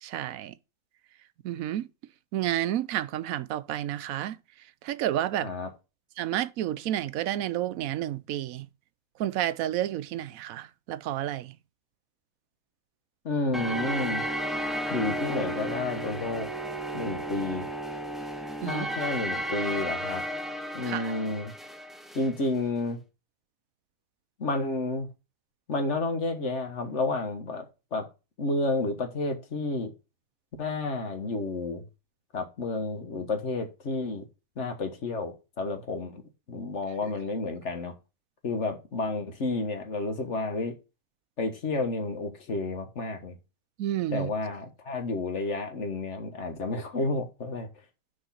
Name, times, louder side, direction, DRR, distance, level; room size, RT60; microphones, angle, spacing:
voice 1, 0.0-0.5 1.4-1.9 2.3-5.5 6.2-8.7 9.2-11.6 18.6-18.9 20.9-21.1 37.0-37.1 43.8-44.3, right 12 dB, 75° right, 1.0 m, -31 dB
voice 2, 13.2-14.2 14.9-16.5 16.9-17.7 18.6-20.2 20.7-21.5 22.1-23.0 24.4-25.1 25.7-27.6 27.9-28.0 28.4-29.9 30.6-31.8 32.3-34.2 34.6-36.2 36.5-37.9 38.4-40.8 41.4-43.4 44.1-47.7, left 2 dB, 50° left, 1.7 m, -30 dB
sound 1, 13.5-22.3, right 1 dB, ahead, 0.4 m, -33 dB
6.4 x 5.0 x 5.7 m
omnidirectional pair, 1.6 m